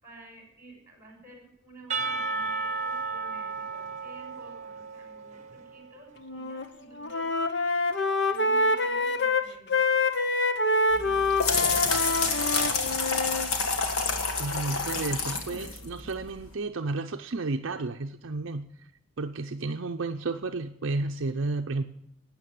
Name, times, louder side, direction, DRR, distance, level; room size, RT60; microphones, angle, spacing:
voice 1, 0.0-7.8 8.3-9.8 11.0-12.9, right 1 dB, 15° right, 1 dB, 5.9 m, -52 dB
Percussion / Church bell, 1.9-5.9, right 4 dB, 35° right, 1.1 m, -33 dB
Wind instrument woodwind instrument, 6.2-6.7 7.0-13.5, left 2 dB, 55° left, 1.1 m, -26 dB
sound 1, 10.9-16.5, left 4 dB, 85° left, 1.9 m, -29 dB
voice 2, 14.4-18.9 19.2-21.8, right 3 dB, 60° right, 6 dB, 0.6 m, -32 dB
12.5 x 9.1 x 9.2 m, 0.76 s
head